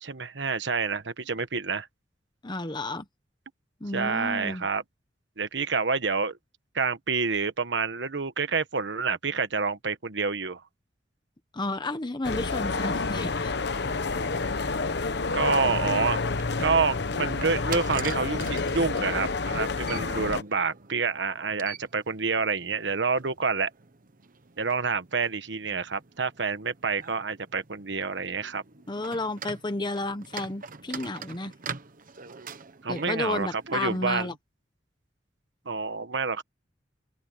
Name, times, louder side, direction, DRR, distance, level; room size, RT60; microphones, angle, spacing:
voice 1, 0.0-1.9 3.9-4.8 5.4-6.4 6.7-10.6 15.3-16.2 16.6-23.7 24.6-28.6 32.8-34.3 35.6-36.4, right 4 dB, 80° right, 1.3 m, -28 dB
voice 2, 2.4-3.1 3.8-4.7 11.5-13.5 28.9-31.5 32.9-34.3, left 2 dB, 25° left, 1.0 m, -32 dB
sound 1, 12.2-20.4, left 3 dB, 70° left, 1.0 m, -29 dB
sound 2, 16.0-34.0, right 6 dB, 50° right, 1.1 m, -45 dB
open air
head